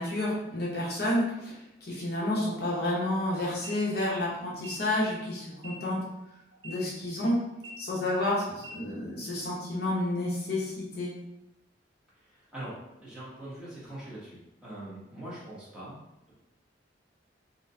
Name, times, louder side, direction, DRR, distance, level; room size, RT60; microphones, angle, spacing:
voice 1, 0.0-6.0 6.6-7.4 7.8-11.1, left 1 dB, 55° left, -5 dB, 0.8 m, -30 dB
sound 1, 3.6-3.7 4.5-4.7 5.5-5.7 6.5-6.7 7.5-7.7 8.5-8.7, right 2 dB, 65° right, 0.9 m, -45 dB
voice 2, 12.3-16.0, right 1 dB, 5° right, -10 dB, 1.0 m, -42 dB
3.9 x 2.2 x 2.6 m, 0.90 s
head